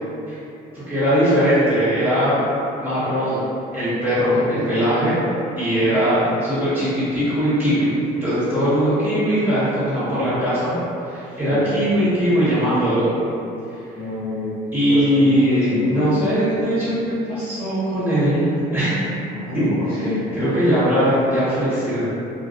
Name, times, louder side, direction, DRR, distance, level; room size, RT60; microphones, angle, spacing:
voice 1, 0.7-2.4 2.8-3.5 3.7-5.2 5.6-10.8 11.0-13.1 14.7-19.0 19.5-19.7 20.4-22.1, equal, 10° right, -13 dB, 1.4 m, -20 dB
voice 2, 4.5-4.8 11.4-11.7 13.9-14.6 14.9-16.2 19.3-20.3, left 2 dB, 55° left, -12 dB, 1.2 m, -28 dB
2.4 x 2.3 x 2.5 m, 2.7 s
cardioid pair, 110°, 17 cm